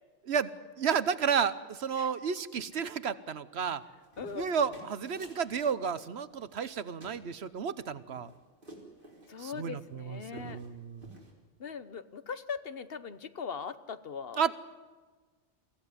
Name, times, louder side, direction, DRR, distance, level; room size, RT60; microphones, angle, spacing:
voice 1, 0.8-3.8 4.3-8.3 9.4-11.1 14.4-14.5, right 7 dB, 65° right, 15 dB, 1.1 m, -32 dB
sound 1, 3.8-5.4 6.3-6.8 7.0-7.2 7.7-9.3 9.8-9.9 10.2-10.7 11.0-11.3, right 1 dB, 45° right, 4.2 m, -51 dB
voice 2, 4.2-4.8 9.3-10.6 11.6-14.5, left 6 dB, 55° left, 13 dB, 1.1 m, -40 dB
24.0 x 15.5 x 9.7 m, 1.4 s
omnidirectional pair, 1.2 m